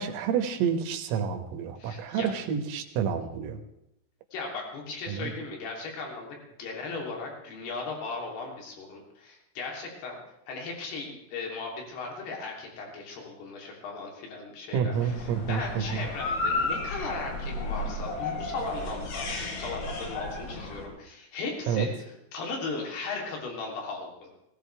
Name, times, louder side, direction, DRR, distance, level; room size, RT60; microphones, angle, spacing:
voice 1, 0.0-3.6 5.1-5.3 14.7-15.6 16.0-16.1 21.7-21.9, right 7 dB, 80° right, 6 dB, 4.0 m, -29 dB
voice 2, 1.8-2.3 4.3-10.2 10.5-21.9 22.3-24.3, left 3 dB, 55° left, 0 dB, 4.9 m, -37 dB
sound 1, 14.9-20.9, left 2 dB, 80° left, 5.4 m, -33 dB
18.5 x 18.0 x 3.4 m, 0.83 s
omnidirectional pair, 6.0 m